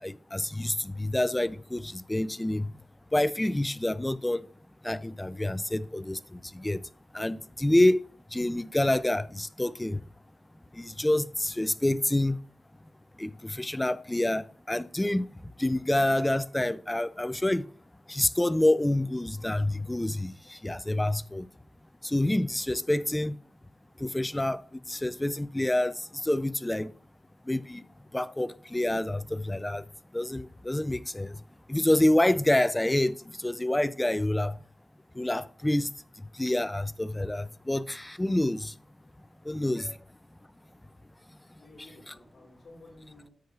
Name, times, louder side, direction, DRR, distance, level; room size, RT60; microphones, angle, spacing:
voice 1, 0.0-2.7 3.1-4.5 4.8-6.8 7.1-8.0 8.3-10.0 10.8-12.4 13.2-15.3 15.6-17.7 18.1-21.5 22.0-23.4 24.0-24.6 24.9-26.0 26.2-26.9 27.5-27.8 28.1-29.8 30.1-31.4 31.7-34.6 35.2-35.9 36.4-38.7 39.5-40.0 42.1-42.2, left 1 dB, 10° left, 0.3 m, -27 dB
voice 2, 41.5-43.3, left 2 dB, 55° left, 2.9 m, -53 dB
10.5 x 7.7 x 2.4 m
wide cardioid pair, 145°, 0 cm